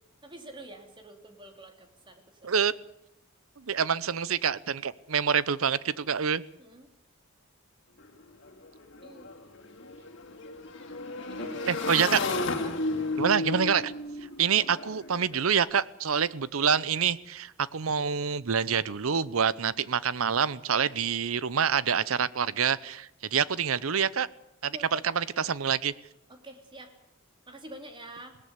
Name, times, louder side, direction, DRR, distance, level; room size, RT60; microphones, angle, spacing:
voice 1, 0.2-2.6 6.6-6.9 9.0-9.4 11.3-11.8 12.6-12.8 20.0-20.1 24.7-25.1 26.3-26.9 27.5-28.4, right 1 dB, 25° right, 5 dB, 2.8 m, -46 dB
voice 2, 3.7-6.4 11.7-12.2 13.2-13.9 14.4-24.3 24.6-25.9, right 7 dB, 90° right, 18 dB, 0.7 m, -26 dB
Motorcycle / Engine, 8.0-8.1 8.3-15.5, left 2 dB, 60° left, 2.7 m, -34 dB
20.5 x 18.0 x 8.1 m, 0.81 s
head